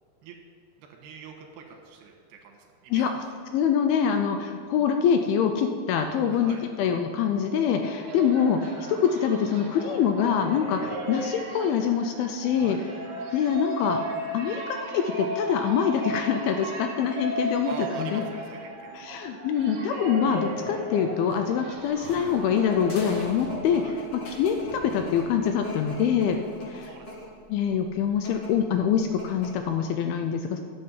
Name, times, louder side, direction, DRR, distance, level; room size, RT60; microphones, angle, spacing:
voice 1, 0.8-3.1 6.3-6.6 12.6-12.8 17.6-19.3 23.7-24.0 26.7-27.2, right 5 dB, 80° right, 1 dB, 3.4 m, -44 dB
voice 2, 3.5-12.8 13.3-14.0 14.3-18.2 18.9-23.9 24.4-26.4 26.7-26.9 27.5-30.6, left 7 dB, 80° left, 6 dB, 2.3 m, -25 dB
sound 1, 7.3-24.2, right 1 dB, 60° right, 2.5 m, -36 dB
sound 2, 21.3-25.7, left 2 dB, 55° left, 1.8 m, -43 dB
sound 3, 22.0-27.4 28.1-28.5 28.9-29.0 29.2-29.7, left 2 dB, 30° left, 3.6 m, -41 dB
12.0 x 7.6 x 5.7 m, 2.3 s
omnidirectional pair, 4.8 m